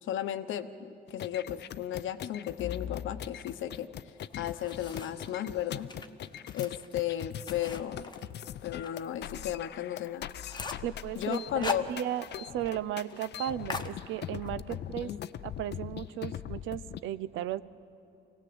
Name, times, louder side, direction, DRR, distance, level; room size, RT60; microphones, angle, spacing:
voice 1, 0.0-5.9 6.5-8.1 8.6-10.2 11.2-11.9 14.7-15.2, left 11 dB, 80° left, 10 dB, 0.9 m, -35 dB
sound 1, 1.1-17.0, left 11 dB, 60° left, 0.5 m, -41 dB
sound 2, 4.2-5.3 5.8-9.0 9.4-9.5 9.8-9.9 10.2-10.9 11.3-12.4 12.7-12.8 13.1-13.3 13.7-14.5, left 3 dB, 20° left, 1.0 m, -40 dB
voice 2, 10.8-12.2 12.5-15.1 15.4-17.6, right 12 dB, 90° right, 16 dB, 0.6 m, -35 dB
24.5 x 17.5 x 7.9 m, 2.8 s
cardioid pair, 90°, 20 cm